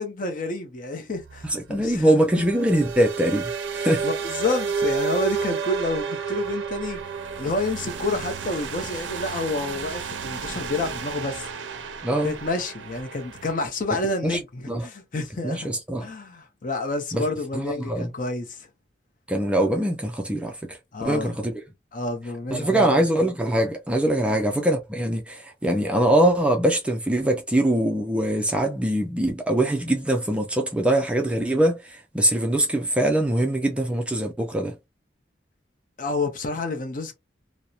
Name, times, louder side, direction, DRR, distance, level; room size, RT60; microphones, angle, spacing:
voice 1, 0.0-2.1 3.8-7.0 7.4-11.5 12.2-15.7 16.0-18.7 20.9-21.4 21.9-23.0 36.0-37.2, left 2 dB, 45° left, 0.6 m, -29 dB
sound 1, 1.2-13.6, right 5 dB, 75° right, 0.5 m, -31 dB
voice 2, 1.5-3.5 3.8-4.0 12.0-12.3 14.2-14.4 14.7-14.8 15.4-16.0 17.1-17.2 17.5-18.1 19.3-20.8 21.0-21.6 22.5-34.7, right 1 dB, 5° right, 0.3 m, -23 dB
2.8 x 2.0 x 2.3 m
head